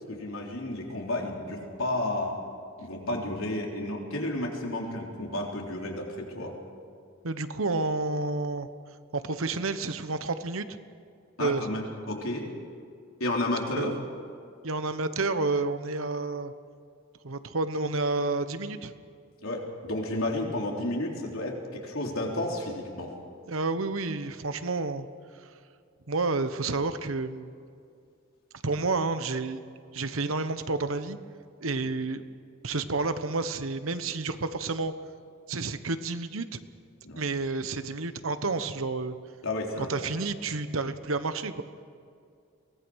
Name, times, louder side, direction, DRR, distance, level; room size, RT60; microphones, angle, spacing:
voice 1, 0.1-2.4 2.8-6.5 11.4-12.5 13.2-14.0 19.4-23.2 37.0-37.2 39.4-40.1, left 1 dB, 90° left, -1 dB, 3.8 m, -32 dB
voice 2, 7.2-8.7 9.1-10.7 11.4-11.7 13.7-14.0 14.6-16.5 17.2-18.9 23.5-25.1 26.1-27.6 28.6-29.6 29.9-31.2 31.6-32.2 32.6-34.9 35.5-36.6 37.2-39.2 39.8-41.6, right 3 dB, 80° right, 11 dB, 1.1 m, -30 dB
23.0 x 19.0 x 6.4 m, 2.4 s
head